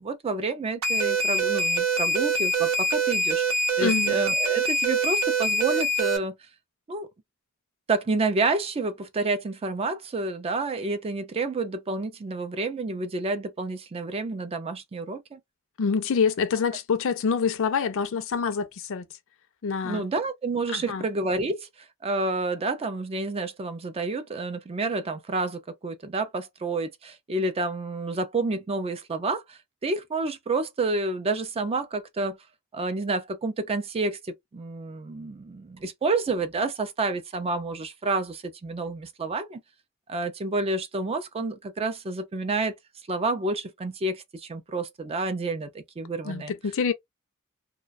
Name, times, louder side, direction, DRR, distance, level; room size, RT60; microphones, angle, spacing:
voice 1, 0.0-6.3 6.9-7.1 7.9-15.4 19.8-21.7 22.0-32.4 32.7-39.6 40.1-42.8 43.1-46.5, right 3 dB, 25° right, 0.4 m, -29 dB
sound 1, 0.8-6.2, right 2 dB, 75° right, 0.7 m, -24 dB
voice 2, 3.8-4.2 15.8-19.1 19.6-20.0 20.7-21.1 46.2-46.9, left 5 dB, 65° left, 0.5 m, -26 dB
2.3 x 2.2 x 2.4 m
head